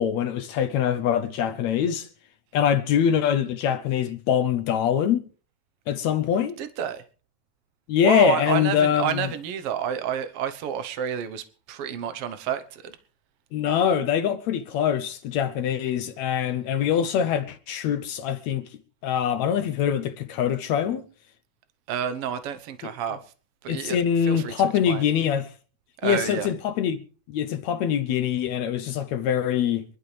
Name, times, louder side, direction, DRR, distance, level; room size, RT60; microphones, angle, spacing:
voice 1, 0.0-2.1 2.5-5.2 5.9-6.6 7.9-9.3 13.5-18.7 19.0-21.1 22.8-22.9 23.7-25.5 26.0-27.0 27.3-29.8, left 9 dB, 70° left, 1.8 m, -24 dB
voice 2, 6.6-7.0 8.0-12.9 21.9-23.2 23.6-24.0 24.2-24.5 24.9-25.0 26.0-26.5, right 9 dB, 65° right, 1.6 m, -29 dB
26.5 x 11.0 x 3.3 m
omnidirectional pair, 3.7 m